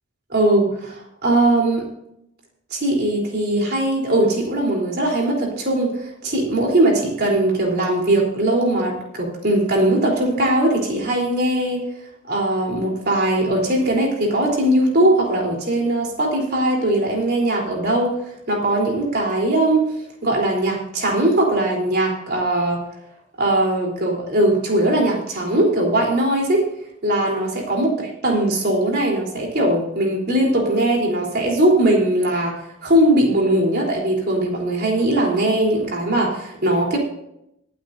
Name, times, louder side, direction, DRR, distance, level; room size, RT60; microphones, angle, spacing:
voice 1, 0.3-1.9 2.7-11.8 12.3-18.1 18.5-19.9 20.2-22.8 23.4-26.7 27.0-27.9 28.2-32.5 32.8-37.0, right 1 dB, 55° right, -2 dB, 3.7 m, -20 dB
25.5 x 8.9 x 2.7 m, 0.80 s
head